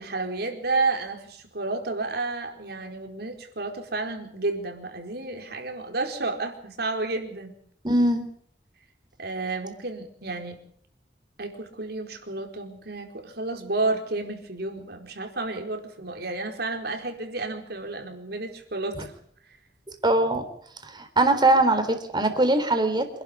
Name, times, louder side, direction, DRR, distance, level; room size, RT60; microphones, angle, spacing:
voice 1, 0.0-7.5 9.2-10.6 11.4-19.1, right 3 dB, 65° right, 4 dB, 4.7 m, -31 dB
voice 2, 7.8-8.2 20.0-20.5 20.8-23.1, right 2 dB, 25° right, 7 dB, 3.8 m, -21 dB
27.0 x 12.0 x 9.8 m, 0.65 s
head